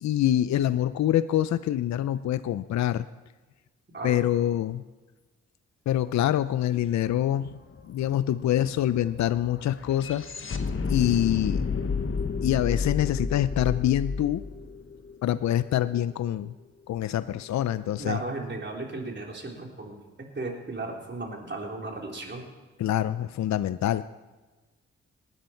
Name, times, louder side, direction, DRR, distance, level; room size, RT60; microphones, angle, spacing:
voice 1, 0.0-3.0 4.0-4.8 5.9-7.6 7.9-10.2 10.9-11.6 12.4-14.4 15.2-16.5 16.9-18.2 22.8-24.0, left 12 dB, 70° left, 14 dB, 0.5 m, -25 dB
sound 1, 7.1-7.2 7.4-15.7, left 5 dB, 45° left, 1.2 m, -31 dB
voice 2, 18.0-22.4, right 2 dB, 40° right, 0 dB, 3.7 m, -35 dB
19.0 x 11.0 x 4.4 m, 1.2 s
supercardioid pair, 50°, 29 cm